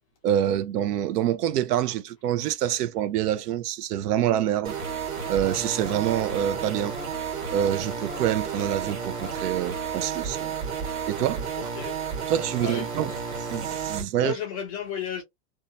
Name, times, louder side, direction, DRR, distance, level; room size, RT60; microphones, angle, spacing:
voice 1, 0.2-4.8 5.3-7.0 7.5-10.5 11.1-11.7 12.3-13.1 13.4-14.3, right 11 dB, 70° right, 0.6 m, -26 dB
sound 1, 4.6-14.0, right 6 dB, 40° right, 1.3 m, -32 dB
voice 2, 11.6-12.0 12.6-13.2 14.2-15.2, left 8 dB, 25° left, 0.3 m, -34 dB
2.8 x 2.2 x 2.6 m
hypercardioid pair, 140°, 48 cm